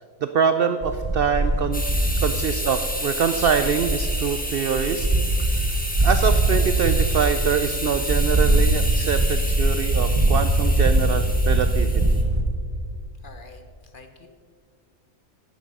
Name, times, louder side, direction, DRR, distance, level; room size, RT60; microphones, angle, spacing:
voice 1, 0.2-1.9 2.2-5.1 5.5-11.9, right 7 dB, 70° right, 9 dB, 0.5 m, -24 dB
sound 1, 0.8-4.3 4.7-12.4, right 2 dB, 25° right, 0.8 m, -22 dB
sound 2, 1.7-12.2, left 1 dB, 5° left, 1.1 m, -31 dB
voice 2, 13.2-14.3, left 3 dB, 45° left, 6 dB, 0.9 m, -47 dB
11.5 x 9.1 x 5.4 m, 2.2 s
omnidirectional pair, 1.5 m